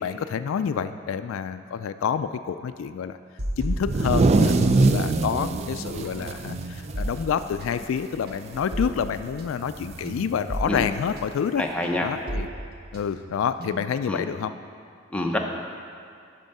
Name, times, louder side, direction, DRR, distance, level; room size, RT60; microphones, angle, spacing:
voice 1, 0.0-3.2 3.6-11.6 12.0-12.5 12.9-14.5, left 7 dB, 80° left, 11 dB, 0.3 m, -28 dB
sound 1, 3.4-5.1 5.4-14.1, right 1 dB, 50° right, 0.9 m, -35 dB
masking tape reversed, 3.8-7.5 7.8-8.0 8.3-8.8 9.9-10.0 11.1-11.2, right 3 dB, 35° right, 0.4 m, -23 dB
voice 2, 11.6-12.1 14.1-14.2 15.1-15.4, left 1 dB, 5° left, 0 dB, 0.6 m, -26 dB
12.0 x 4.5 x 5.4 m, 2.3 s
head